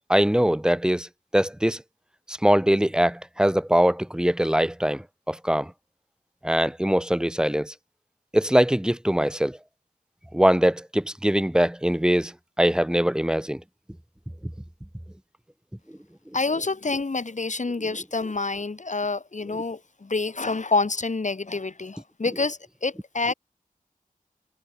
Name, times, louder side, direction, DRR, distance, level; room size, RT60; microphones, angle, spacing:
voice 1, 0.1-1.1 1.3-1.8 2.4-5.7 6.4-7.7 8.3-9.6 10.3-12.3 12.6-13.6, equal, 5° right, 0.4 m, -22 dB
voice 2, 16.3-23.3, left 3 dB, 55° left, 1.8 m, -27 dB
wide cardioid pair, 70°, 15 cm